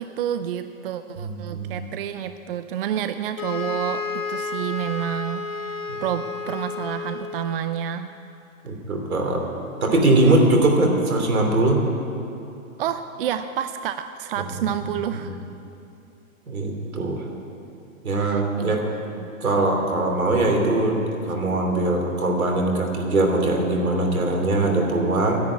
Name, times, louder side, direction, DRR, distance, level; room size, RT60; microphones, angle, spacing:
voice 1, 0.0-8.1 12.8-15.4 18.2-18.7 19.2-19.3, right 10 dB, 40° right, 10 dB, 0.5 m, -29 dB
voice 2, 1.2-1.9 5.9-6.0 8.6-9.4 9.8-11.8 14.4-14.6 15.2-15.3 16.5-17.2 18.0-18.8 19.4-25.4, right 2 dB, 75° right, 2 dB, 3.0 m, -21 dB
sound 1, 3.4-7.8, left 4 dB, 65° left, 1.3 m, -31 dB
10.5 x 10.5 x 9.3 m, 2.7 s
hypercardioid pair, 130°, 42 cm